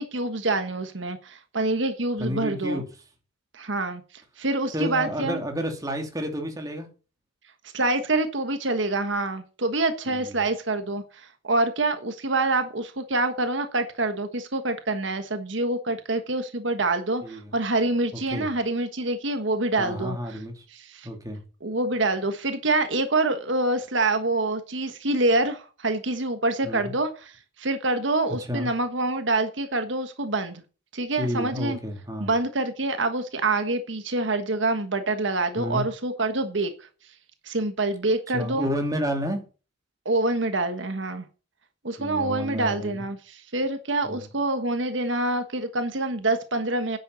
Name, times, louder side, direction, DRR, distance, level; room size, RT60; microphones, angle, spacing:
voice 1, 0.0-2.8 3.5-4.0 4.4-5.4 7.7-20.4 20.7-21.1 21.6-30.6 30.9-31.8 32.2-36.7 37.4-38.7 40.0-41.3 41.8-47.0, right 2 dB, 75° right, 1.4 m, -26 dB
voice 2, 2.2-2.9 4.7-6.9 10.1-10.3 17.2-17.5 18.3-18.5 19.8-20.6 21.0-21.4 26.6-26.9 28.5-28.7 31.2-32.3 35.6-35.8 38.3-39.4 42.0-43.0 44.0-44.3, equal, 20° right, 2.8 m, -30 dB
10.5 x 7.9 x 6.9 m
head